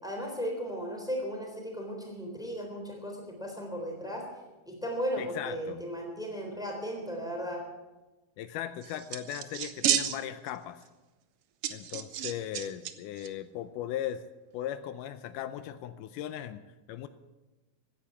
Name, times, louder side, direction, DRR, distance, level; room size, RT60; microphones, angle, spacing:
voice 1, 0.0-4.2 4.7-7.6, equal, ahead, 1 dB, 3.1 m, -36 dB
voice 2, 5.2-5.8 8.4-10.8 11.7-14.2 14.5-16.6 16.9-17.1, left 11 dB, 80° left, 12 dB, 2.2 m, -38 dB
sound 1, 8.8-10.5 10.8-10.9 11.6-12.9 13.2-13.3, right 10 dB, 80° right, 1.3 m, -31 dB
16.0 x 10.0 x 7.0 m, 1.1 s
omnidirectional pair, 3.7 m